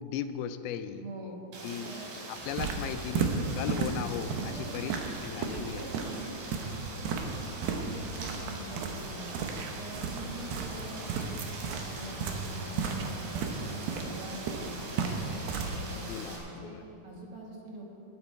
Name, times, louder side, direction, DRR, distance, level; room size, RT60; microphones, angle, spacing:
voice 1, 0.0-1.0 1.6-1.9 2.3-5.9 10.5-10.6 10.9-11.0 15.9-16.4 16.7-16.8, left 9 dB, 85° left, 10 dB, 2.4 m, -37 dB
voice 2, 0.9-1.4 1.8-2.0 4.3-5.0 5.7-9.4 9.7-11.3 11.7-15.2 15.7-18.0, right 1 dB, 50° right, -1 dB, 1.9 m, -44 dB
Rain, 1.5-16.4, right 2 dB, 65° right, 3.7 m, -43 dB
sound 1, 2.4-15.8, right 5 dB, 85° right, 3.0 m, -35 dB
19.0 x 9.8 x 4.5 m, 2.8 s
omnidirectional pair, 4.4 m